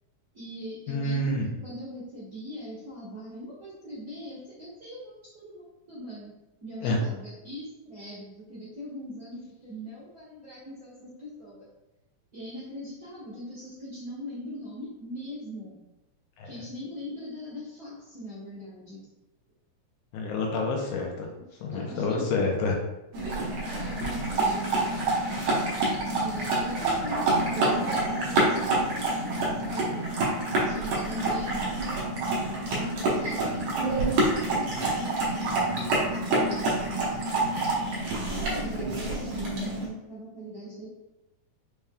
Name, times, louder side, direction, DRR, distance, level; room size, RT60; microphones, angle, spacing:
voice 1, 0.3-6.3 6.6-11.7 12.3-15.8 16.4-19.0 21.7-22.2 23.2-23.5 23.7-24.9 26.1-30.1 30.6-31.9 33.0-37.5 38.1-40.9, equal, 40° right, -12 dB, 1.4 m, -41 dB
voice 2, 0.9-1.5 6.8-7.0 16.4-16.5 20.1-21.3 21.6-22.8, left 2 dB, 85° left, 0 dB, 2.1 m, -28 dB
sound 1, 23.1-39.9, right 2 dB, 65° right, 1.4 m, -27 dB
5.5 x 3.4 x 2.3 m, 0.97 s
omnidirectional pair, 3.6 m